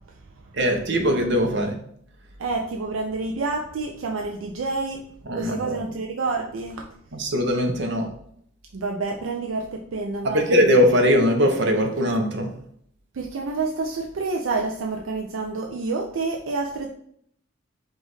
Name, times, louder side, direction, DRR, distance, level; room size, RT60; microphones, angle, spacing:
voice 1, 0.5-1.8 5.3-5.8 7.1-8.1 10.2-12.5, equal, 65° right, 3 dB, 0.8 m, -20 dB
voice 2, 2.4-5.0 5.3-6.9 8.7-10.5 13.1-16.9, right 3 dB, 80° right, 1 dB, 0.5 m, -28 dB
5.0 x 2.5 x 3.9 m, 0.67 s
head